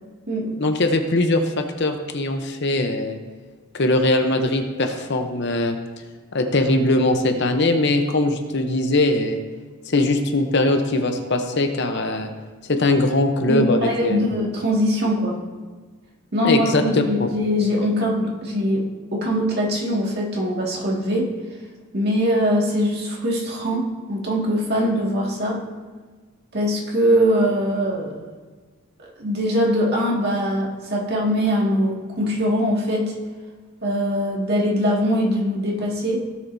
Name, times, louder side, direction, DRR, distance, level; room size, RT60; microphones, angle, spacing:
voice 1, 0.6-3.2 3.7-5.8 6.3-9.4 9.9-12.3 12.7-14.2 16.4-16.8 17.2-17.3, left 2 dB, 50° left, 5 dB, 0.8 m, -21 dB
voice 2, 13.5-15.4 16.3-18.8 19.1-21.3 21.9-25.6 26.5-28.2 29.0-33.1 33.8-36.2, equal, 45° right, -3 dB, 2.1 m, -22 dB
16.5 x 7.4 x 2.7 m, 1.4 s
head